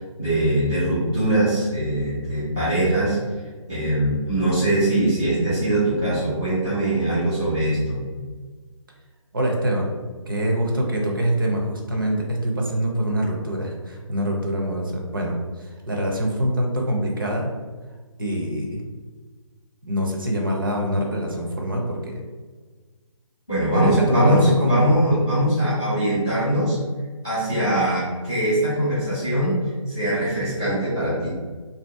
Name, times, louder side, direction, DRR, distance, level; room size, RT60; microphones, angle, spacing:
voice 1, 0.2-3.2 3.7-8.0 23.5-26.8 27.2-29.6 29.9-31.3, right 1 dB, 5° left, -17 dB, 0.4 m, -22 dB
voice 2, 9.3-9.9 10.3-17.5 18.2-18.8 19.9-22.2 23.7-24.9, equal, 40° right, 0 dB, 0.6 m, -24 dB
2.7 x 2.7 x 4.3 m, 1.4 s
hypercardioid pair, 175°, 17 cm